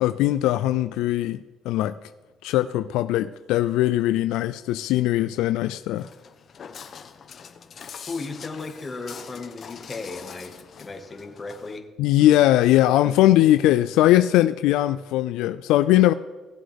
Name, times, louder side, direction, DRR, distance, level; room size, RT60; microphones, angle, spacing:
voice 1, 0.0-1.4 1.7-1.9 2.4-6.1 12.0-16.1, left 14 dB, 85° left, 0.3 m, -20 dB
Walk footsteps, 6.0-11.8, left 6 dB, 50° left, 1.0 m, -43 dB
voice 2, 8.1-10.5 10.8-11.9, left 3 dB, 30° left, 1.7 m, -35 dB
18.0 x 7.6 x 3.5 m
supercardioid pair, 85°, 0 cm